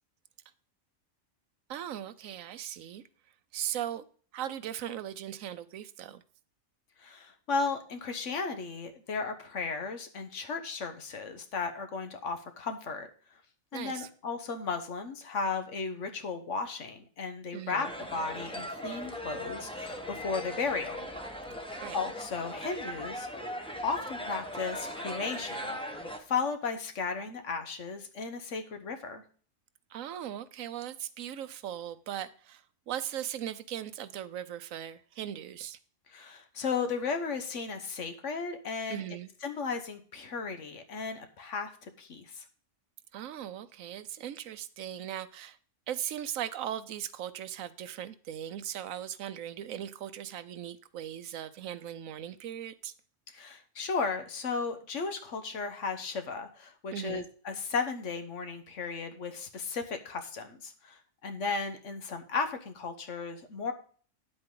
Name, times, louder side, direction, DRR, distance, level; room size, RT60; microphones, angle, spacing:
voice 1, 1.7-3.0 3.5-4.0 4.3-6.2 13.7-14.1 17.5-17.9 21.8-22.0 29.9-35.8 38.9-39.3 43.1-45.6 45.9-52.9 56.9-57.3, right 10 dB, 80° right, 14 dB, 1.1 m, -38 dB
voice 2, 7.0-13.1 13.7-21.1 21.9-23.3 23.8-26.0 26.3-29.2 36.1-39.0 39.4-42.4 53.3-63.7, left 4 dB, 65° left, 7 dB, 1.4 m, -35 dB
sound 1, 17.8-26.2, equal, 5° left, 1.0 m, -39 dB
9.7 x 7.9 x 3.8 m, 0.43 s
omnidirectional pair, 1.4 m